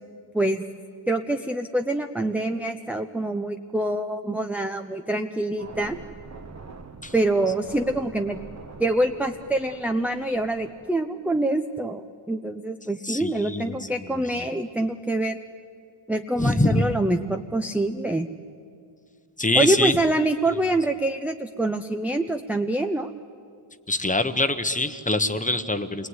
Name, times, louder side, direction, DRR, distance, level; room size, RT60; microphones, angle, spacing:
voice 1, 0.3-0.7 1.1-6.0 7.1-8.4 8.8-15.4 16.1-18.3 19.5-23.1, right 1 dB, 5° right, 5 dB, 0.7 m, -25 dB
sound 1, 5.6-10.9, right 4 dB, 35° right, 1.2 m, -43 dB
voice 2, 13.0-13.8 16.4-16.9 19.4-20.0 23.9-26.1, left 2 dB, 15° left, 10 dB, 1.1 m, -24 dB
28.0 x 21.0 x 9.7 m, 2.3 s
wide cardioid pair, 130°, 49 cm